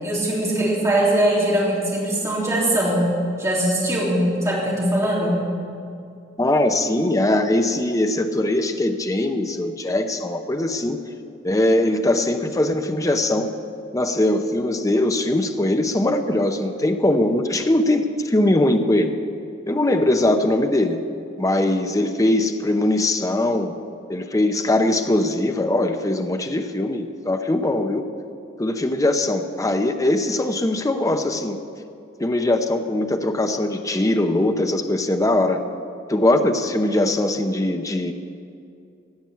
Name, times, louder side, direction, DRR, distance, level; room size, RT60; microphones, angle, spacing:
voice 1, 0.0-3.1 3.4-5.5, right 1 dB, 15° right, -5 dB, 3.4 m, -21 dB
voice 2, 6.4-11.0 11.4-13.5 13.9-19.1 19.7-21.0 21.4-23.7 24.1-28.0 28.6-31.6 32.2-35.6 36.1-38.1, left 1 dB, 20° left, 7 dB, 0.7 m, -21 dB
16.0 x 6.0 x 9.5 m, 2.4 s
head